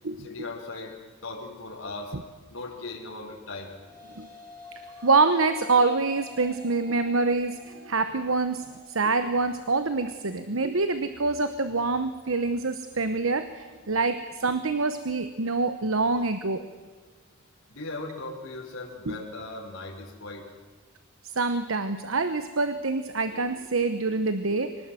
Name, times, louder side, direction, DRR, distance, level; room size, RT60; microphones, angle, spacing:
voice 1, 0.2-2.2 2.5-3.7 17.7-20.5, left 2 dB, 90° left, 0 dB, 4.6 m, -38 dB
sound 1, 3.4-12.5, left 2 dB, 45° right, 5.8 m, -49 dB
voice 2, 5.0-16.7 19.1-19.2 21.2-24.8, right 3 dB, 85° right, 10 dB, 1.1 m, -26 dB
24.5 x 19.0 x 7.7 m, 1.4 s
head